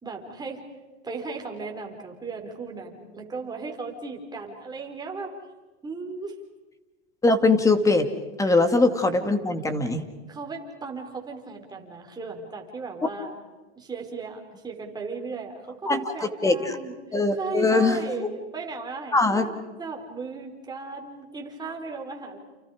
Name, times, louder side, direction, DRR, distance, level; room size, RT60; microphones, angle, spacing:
voice 1, 0.0-0.7 1.0-5.4 5.8-6.4 8.4-8.5 10.3-13.4 13.8-19.5 19.8-22.4, right 4 dB, 10° right, 1 dB, 4.3 m, -36 dB
voice 2, 7.2-8.1 8.4-10.0 15.9-16.8 17.1-18.3 19.1-19.5, left 3 dB, 10° left, 8 dB, 2.2 m, -22 dB
30.0 x 29.5 x 5.1 m, 1.2 s
supercardioid pair, 135°, 34 cm